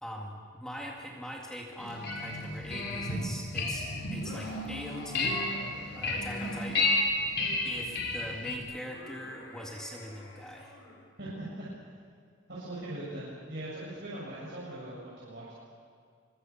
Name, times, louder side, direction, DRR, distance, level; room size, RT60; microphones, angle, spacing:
voice 1, 0.0-5.4 5.9-6.9 7.6-10.8, equal, 5° left, -1 dB, 2.1 m, -42 dB
sound 1, 1.8-8.6, left 2 dB, 55° left, 4.3 m, -32 dB
sound 2, 1.9-2.0 2.4-2.5 4.1-6.7 8.7-11.3, left 2 dB, 80° left, 6.3 m, -48 dB
voice 2, 11.2-11.6 12.5-15.5, right 1 dB, 60° right, -8 dB, 7.1 m, -40 dB
24.5 x 24.0 x 7.2 m, 2.2 s
head